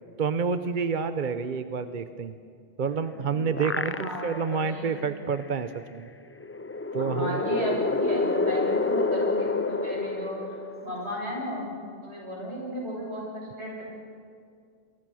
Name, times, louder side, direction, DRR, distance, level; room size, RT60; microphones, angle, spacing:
voice 1, 0.2-2.4 2.8-6.1 6.9-7.4, right 5 dB, 50° right, 10 dB, 0.9 m, -29 dB
sound 1, 2.9-4.5 5.0-5.1 6.4-11.2, left 3 dB, 20° left, 0.3 m, -28 dB
voice 2, 3.8-4.9 7.0-10.4 10.8-11.7 12.0-13.8, equal, 80° right, -3 dB, 7.9 m, -34 dB
28.5 x 23.0 x 6.3 m, 2.2 s
omnidirectional pair, 1.1 m